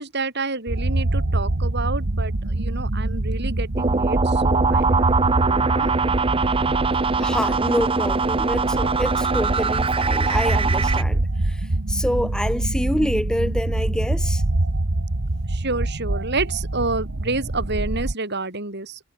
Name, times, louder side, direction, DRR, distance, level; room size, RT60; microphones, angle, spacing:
voice 1, 0.0-5.9 10.4-10.5 15.5-19.0, right 3 dB, 55° right, 7.0 m, -29 dB
sound 1, 0.7-18.1, right 2 dB, 85° right, 1.5 m, -25 dB
sound 2, 3.8-11.0, right 4 dB, 25° right, 0.8 m, -22 dB
voice 2, 7.2-14.4, equal, 5° left, 1.6 m, -27 dB
head